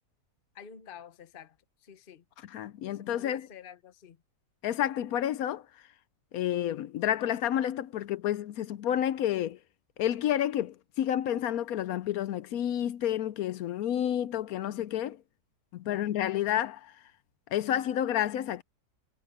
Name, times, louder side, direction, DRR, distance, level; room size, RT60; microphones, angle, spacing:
voice 1, 0.5-2.2 2.9-4.2 15.9-16.1, left 7 dB, 35° left, 1.1 m, -49 dB
voice 2, 2.4-3.5 4.6-5.6 6.3-9.6 10.0-15.2 15.7-16.9 17.5-18.6, left 11 dB, 70° left, 1.0 m, -30 dB
omnidirectional pair, 1.8 m